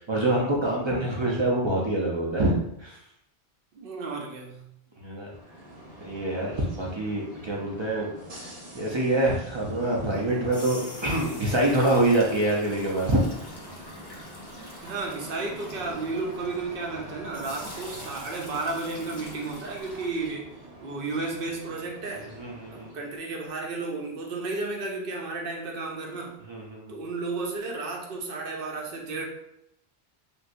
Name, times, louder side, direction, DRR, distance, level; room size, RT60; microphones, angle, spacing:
voice 1, 0.0-2.5 2.8-3.0 5.0-5.3 6.0-8.1 8.4-8.5 8.7-13.2 22.4-22.9 26.5-27.0, right 1 dB, 45° right, -3 dB, 0.4 m, -25 dB
voice 2, 3.7-4.7 14.8-20.6 20.8-22.3 22.7-26.4 26.9-29.2, right 3 dB, 65° right, 0 dB, 0.8 m, -33 dB
sound 1, 5.1-23.2, equal, 80° right, 1.2 m, -46 dB
sound 2, 10.3-17.0 17.3-20.3, left 1 dB, 30° left, 0.6 m, -44 dB
3.2 x 2.6 x 2.5 m, 0.78 s
omnidirectional pair, 1.1 m